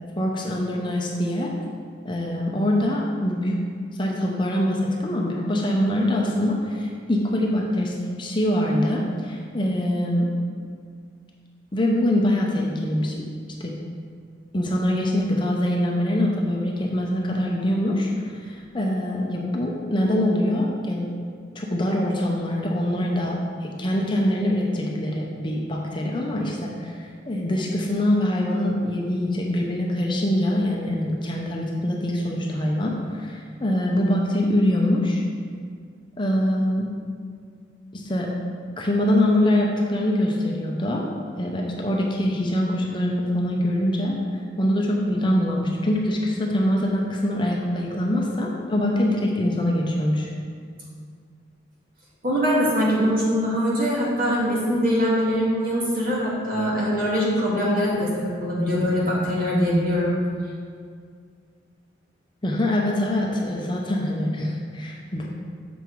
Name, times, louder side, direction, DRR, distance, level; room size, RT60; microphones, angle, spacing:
voice 1, 0.2-1.5 2.0-3.6 4.0-10.3 11.7-13.2 13.6-13.7 14.5-21.1 21.5-35.2 36.2-36.8 37.9-38.3 38.8-41.0 41.4-44.2 44.6-50.3 62.4-65.3, left 1 dB, 25° left, -1 dB, 0.7 m, -24 dB
voice 2, 52.2-60.1, equal, 50° right, -6 dB, 1.9 m, -22 dB
7.1 x 5.6 x 4.6 m, 2.1 s
head